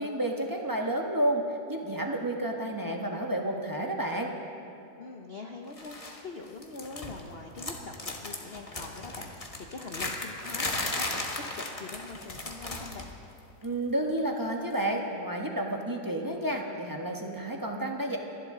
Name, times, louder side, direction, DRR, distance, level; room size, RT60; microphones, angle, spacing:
voice 1, 0.0-1.4 1.7-4.3 13.6-18.2, right 1 dB, 15° right, 1 dB, 0.9 m, -30 dB
voice 2, 5.0-11.3 11.5-13.1, left 3 dB, 45° left, 2 dB, 0.8 m, -43 dB
sound 1, 5.8-6.2 6.5-7.3 7.5-13.1 13.4-13.6 14.7-14.8, left 2 dB, 20° left, 1.2 m, -36 dB
29.5 x 11.5 x 3.8 m, 2.7 s
omnidirectional pair, 1.9 m